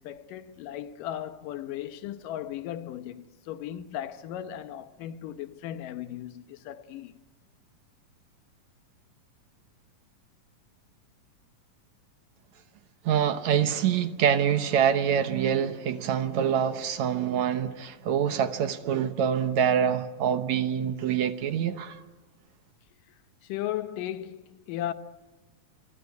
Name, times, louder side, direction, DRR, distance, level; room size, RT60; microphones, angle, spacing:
voice 1, 0.0-7.2 23.4-24.9, left 12 dB, 85° left, 2.6 m, -36 dB
voice 2, 13.1-22.0, right 8 dB, 65° right, 2.2 m, -25 dB
26.0 x 23.5 x 9.6 m
omnidirectional pair, 3.8 m